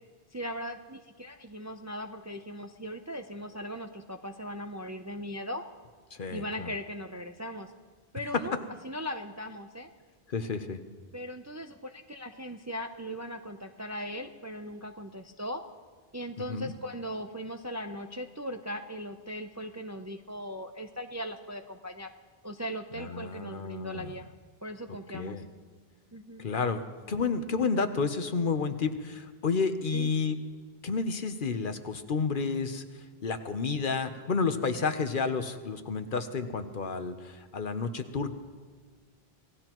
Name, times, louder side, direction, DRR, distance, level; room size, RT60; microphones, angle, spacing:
voice 1, 0.3-5.6 6.3-7.7 8.1-9.9 11.1-15.6 16.1-22.1 22.4-24.3 24.6-25.4 26.1-26.5 29.9-30.1, equal, 20° right, 6 dB, 0.5 m, -39 dB
voice 2, 6.2-6.7 8.3-8.4 10.3-10.8 16.4-16.7 22.9-24.1 25.1-25.4 26.4-30.4 30.8-38.3, left 4 dB, 55° left, 9 dB, 1.0 m, -31 dB
27.0 x 18.0 x 3.0 m, 1.5 s
omnidirectional pair, 1.1 m